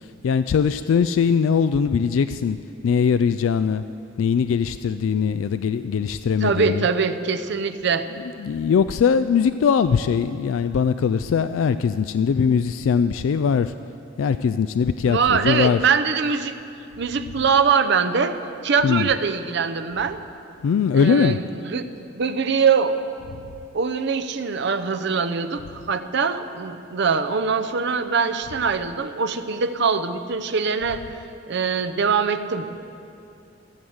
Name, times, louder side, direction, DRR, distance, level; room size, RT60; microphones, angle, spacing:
voice 1, 0.2-2.6 2.8-3.8 4.2-6.9 8.1-13.7 14.2-15.8 18.8-19.1 20.6-21.4, left 6 dB, 75° left, 12 dB, 0.3 m, -21 dB
voice 2, 6.4-8.1 15.0-16.6 17.0-18.4 18.6-20.2 20.9-23.0 23.7-31.0 31.5-32.7, right 5 dB, 60° right, 10 dB, 0.7 m, -23 dB
15.5 x 7.7 x 8.0 m, 2.6 s
head